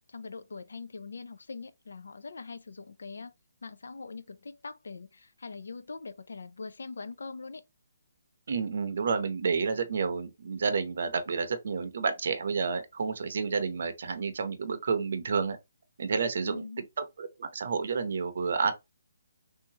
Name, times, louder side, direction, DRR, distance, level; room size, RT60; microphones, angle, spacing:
voice 1, 0.1-3.3 3.6-7.6 16.4-16.9, left 4 dB, 80° left, 0.5 m, -42 dB
voice 2, 8.5-15.6 16.0-16.6 17.0-18.7, right 5 dB, 50° right, 0.7 m, -30 dB
3.4 x 2.8 x 2.8 m
hypercardioid pair, 175°, 0 cm